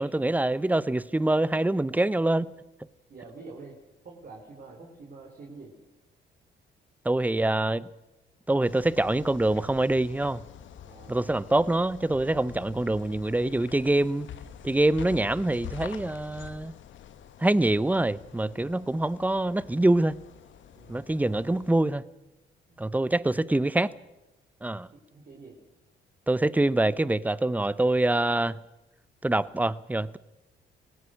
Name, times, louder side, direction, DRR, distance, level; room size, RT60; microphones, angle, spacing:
voice 1, 0.0-2.5 7.0-7.9 8.5-10.4 11.1-14.3 14.6-16.7 17.4-20.2 20.9-22.0 22.8-23.9 24.6-24.9 26.3-28.6 29.2-30.2, right 2 dB, 10° right, 0.7 m, -25 dB
voice 2, 3.1-3.8 4.0-5.7 10.8-11.3 20.7-21.0 22.7-22.8 24.9-25.6, right 3 dB, 50° right, 4.0 m, -46 dB
sound 1, 8.7-21.8, left 9 dB, 70° left, 1.3 m, -46 dB
25.0 x 18.5 x 6.4 m
cardioid pair, 90°, 20 cm